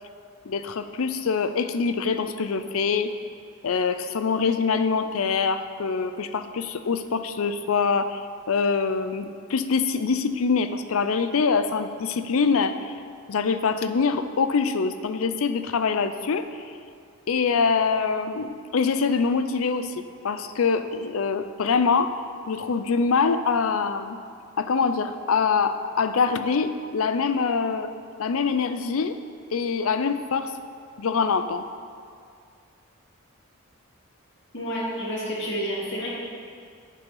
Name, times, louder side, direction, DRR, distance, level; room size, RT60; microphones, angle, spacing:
voice 1, 0.5-3.1 3.6-8.2 8.5-12.9 13.3-16.5 17.3-22.1 22.5-24.2 24.6-27.9 28.2-29.2 29.5-30.5 31.0-31.6, left 5 dB, 70° left, 10 dB, 0.5 m, -24 dB
voice 2, 34.5-36.1, equal, 55° left, -5 dB, 2.1 m, -29 dB
8.4 x 6.8 x 5.5 m, 2.3 s
head